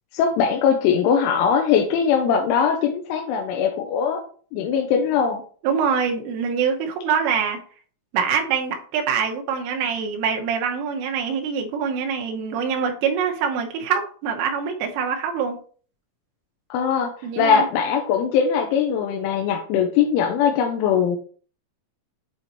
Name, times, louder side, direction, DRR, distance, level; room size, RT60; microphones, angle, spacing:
voice 1, 0.1-4.2 4.5-5.4 16.7-21.2, left 7 dB, 85° left, 3 dB, 3.1 m, -21 dB
voice 2, 5.6-7.6 8.1-15.6 17.2-17.7, right 6 dB, 90° right, 3 dB, 3.6 m, -24 dB
8.8 x 4.0 x 3.0 m, 0.44 s
omnidirectional pair, 5.6 m